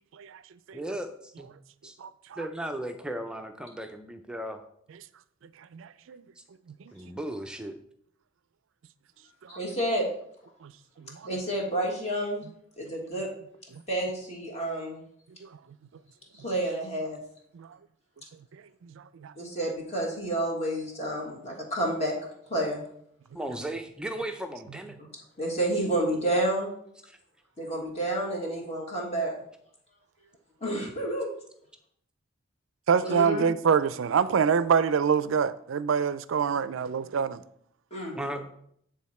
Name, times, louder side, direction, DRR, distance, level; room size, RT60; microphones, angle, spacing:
voice 1, 0.7-1.5 1.8-1.9 2.4-4.6 6.4-6.5 6.9-7.8 23.3-25.0 27.1-27.2 38.1-38.4, right 1 dB, 5° right, 0.4 m, -36 dB
voice 2, 2.0-2.4 5.7-6.2 9.4-9.6 10.6-10.7 11.0-11.3 13.7-13.8 15.4-15.5 17.5-17.8 18.5-19.3 32.9-37.4, right 6 dB, 70° right, 0.4 m, -26 dB
voice 3, 9.5-10.1 11.2-12.4 12.8-13.3 13.9-15.0 16.3-17.2 19.3-22.1 22.5-22.8 25.0-25.1 25.4-26.7 27.6-29.3 30.6-31.3 33.0-33.4 37.9-38.4, right 1 dB, 30° left, 1.4 m, -29 dB
8.4 x 3.7 x 4.2 m
head